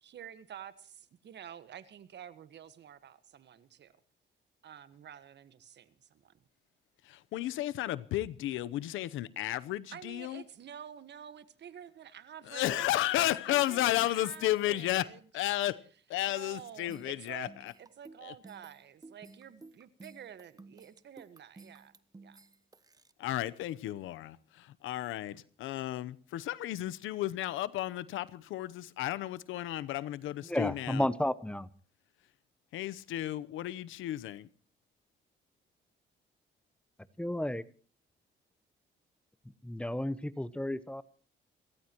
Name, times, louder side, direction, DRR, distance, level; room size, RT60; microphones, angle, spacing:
voice 1, 0.0-3.9 4.6-6.3 9.9-15.4 16.3-21.9 22.2-22.4, right 9 dB, 60° right, 1.5 m, -49 dB
voice 2, 7.0-10.4 12.5-15.8 16.1-17.7 18.2-18.3 23.2-31.1 32.7-34.5, left 14 dB, 90° left, 0.9 m, -33 dB
sound 1, 16.9-23.1, right 3 dB, 20° right, 1.0 m, -54 dB
voice 3, 30.4-31.7 37.2-37.6 39.6-41.0, left 1 dB, 5° left, 1.0 m, -32 dB
29.0 x 14.5 x 3.0 m
cardioid pair, 90°, 20 cm